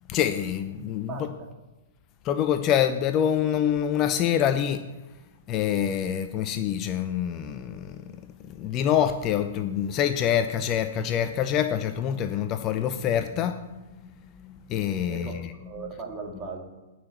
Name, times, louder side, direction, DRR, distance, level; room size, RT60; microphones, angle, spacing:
voice 1, 0.1-1.3 2.2-4.9 5.5-8.0 8.5-15.5, left 9 dB, 30° left, 0.6 m, -26 dB
voice 2, 1.1-1.5 15.0-15.3 15.6-16.7, right 4 dB, 25° right, 2.3 m, -38 dB
9.6 x 5.9 x 8.1 m
figure-of-eight pair, 110°, 0 cm